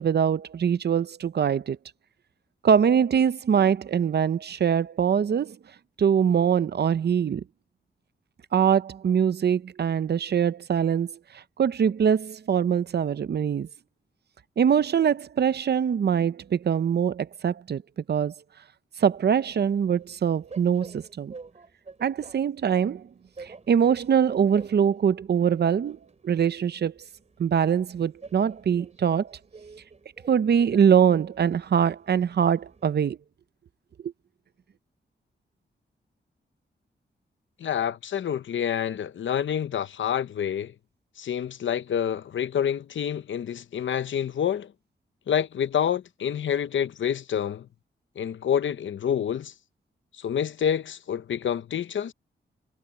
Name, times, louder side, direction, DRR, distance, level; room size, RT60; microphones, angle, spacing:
voice 1, 0.0-1.8 2.6-5.6 6.0-7.4 8.5-11.2 11.6-13.7 14.6-17.8 18.1-18.3 19.0-21.3 22.0-23.1 23.4-26.0 26.2-26.9 27.4-29.3 30.3-33.2 34.0-34.1, right 8 dB, 60° right, 0.7 m, -23 dB
Train, 19.1-33.1, right 4 dB, 35° right, 4.8 m, -49 dB
voice 2, 37.6-40.7 41.2-44.7 45.3-47.7 48.2-49.5 50.2-52.1, left 9 dB, 90° left, 0.8 m, -27 dB
wide cardioid pair, 140°, 19 cm